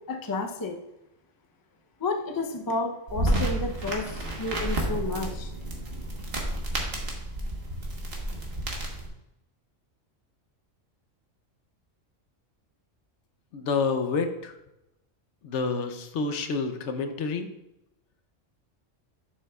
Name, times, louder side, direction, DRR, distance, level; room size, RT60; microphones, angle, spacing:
voice 1, 0.1-0.8 2.0-5.5, left 2 dB, 25° left, 4 dB, 0.5 m, -31 dB
sound 1, 3.1-9.1, right 1 dB, 50° right, 1.5 m, -30 dB
voice 2, 13.5-14.6 15.4-17.5, left 4 dB, 70° left, 8 dB, 1.0 m, -28 dB
11.0 x 6.3 x 2.3 m, 0.87 s
omnidirectional pair, 1.3 m